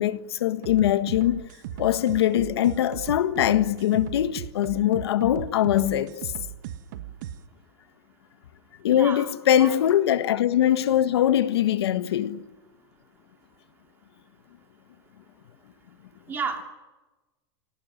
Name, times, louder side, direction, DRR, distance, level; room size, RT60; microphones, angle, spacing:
voice 1, 0.0-1.5 1.8-6.1 8.8-12.4, left 11 dB, 85° left, 1.6 m, -22 dB
sound 1, 0.6-7.4, right 11 dB, 50° right, 1.4 m, -37 dB
voice 2, 8.9-9.3 9.6-9.8 16.3-16.6, right 5 dB, 15° right, 2.6 m, -31 dB
28.0 x 18.5 x 9.9 m
supercardioid pair, 175°, 13 cm